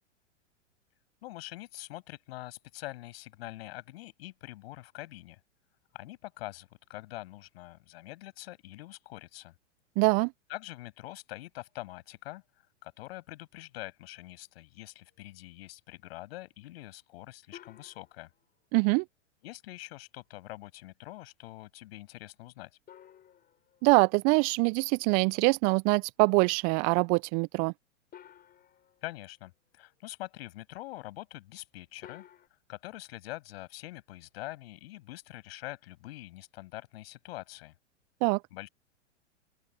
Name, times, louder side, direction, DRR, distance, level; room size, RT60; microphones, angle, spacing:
voice 1, 1.2-5.4 5.9-9.5 10.5-12.4 12.8-18.3 19.4-22.7 29.0-32.3 32.7-37.7 38.5-38.7, left 18 dB, 55° left, 7.1 m, -44 dB
voice 2, 10.0-10.3 18.7-19.0 23.8-27.7 38.2-38.4, right 32 dB, 25° right, 0.4 m, -24 dB
sound 1, 17.5-18.6 22.9-24.4 28.1-29.3 32.0-32.5, left 10 dB, 25° left, 6.3 m, -54 dB
open air
figure-of-eight pair, 105°, 37 cm